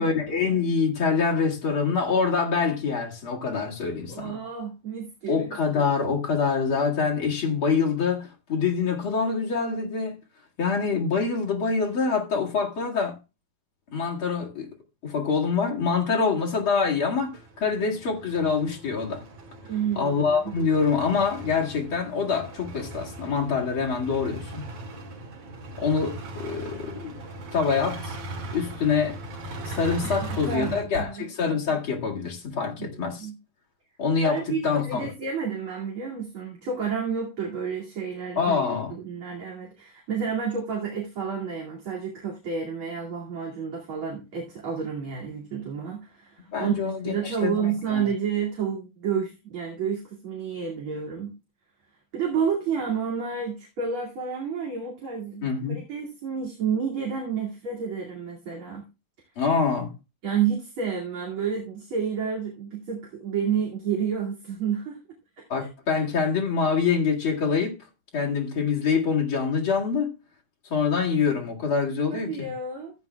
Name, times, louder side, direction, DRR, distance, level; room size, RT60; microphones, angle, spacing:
voice 1, 0.0-4.4 5.3-10.2 10.6-13.2 13.9-14.7 15.0-19.2 20.0-24.6 25.8-27.2 27.5-28.2 28.5-29.2 29.6-33.3 34.0-35.1 38.4-38.9 46.5-48.0 55.4-55.8 59.4-59.9 65.5-67.8 68.1-70.1 70.7-72.5, left 5 dB, 40° left, 2.4 m, -25 dB
voice 2, 4.1-5.4 19.7-20.5 30.5-31.3 32.8-32.9 33.2-33.4 34.2-38.5 38.9-51.3 52.1-58.8 60.2-65.0 65.4-65.5 72.1-72.9, right 6 dB, 40° right, 2.9 m, -30 dB
sound 1, 16.4-30.8, right 2 dB, 60° right, 3.5 m, -39 dB
15.5 x 9.0 x 2.3 m
omnidirectional pair, 4.0 m